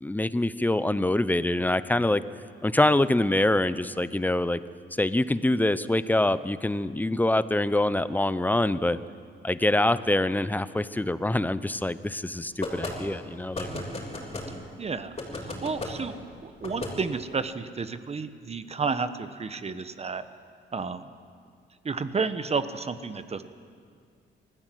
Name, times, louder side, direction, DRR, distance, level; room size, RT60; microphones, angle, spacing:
voice 1, 0.0-2.2 2.6-4.6 5.0-9.0 9.4-13.7, left 1 dB, 10° left, 15 dB, 0.7 m, -25 dB
sound 1, 12.6-13.0 13.5-14.5 15.2-15.9 16.6-16.9, left 2 dB, 30° left, 6.5 m, -34 dB
voice 2, 14.8-16.1 16.4-20.2 20.7-21.0 21.8-23.4, right 4 dB, 30° right, 11 dB, 1.1 m, -31 dB
20.0 x 14.5 x 9.3 m, 2.2 s
cardioid pair, 90°, 20 cm